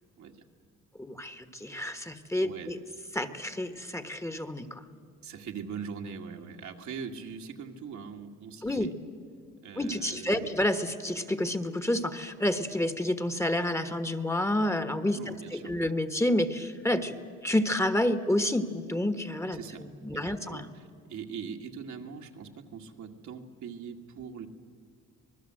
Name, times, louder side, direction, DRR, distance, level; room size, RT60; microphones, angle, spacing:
voice 1, 1.0-2.8 3.1-4.8 8.6-8.9 9.8-17.2 17.4-20.7, left 1 dB, 10° left, 9 dB, 1.3 m, -29 dB
voice 2, 2.4-2.8 5.2-9.0 9.6-10.6 15.1-15.8 19.5-20.8 21.1-24.5, right 6 dB, 70° right, 2 dB, 2.0 m, -42 dB
26.0 x 20.0 x 7.8 m, 2.2 s
cardioid pair, 90°, 30 cm